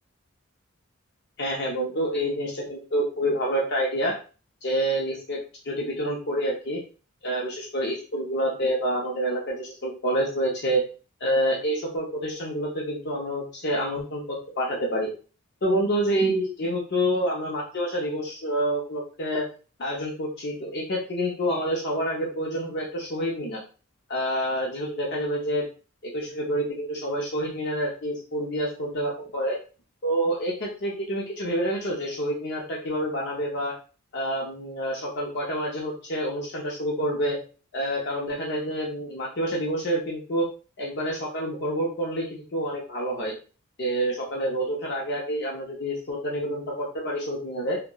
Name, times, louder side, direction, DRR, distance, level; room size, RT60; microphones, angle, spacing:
voice 1, 1.4-4.2 4.6-5.4 5.6-6.8 7.2-10.8 11.2-15.1 15.6-19.5 19.8-23.6 24.1-25.7 26.0-29.6 30.0-33.8 34.1-37.4 37.7-40.5 40.8-43.3 43.8-47.8, equal, 50° left, -3 dB, 0.5 m, -28 dB
2.7 x 2.1 x 2.2 m, 0.36 s
head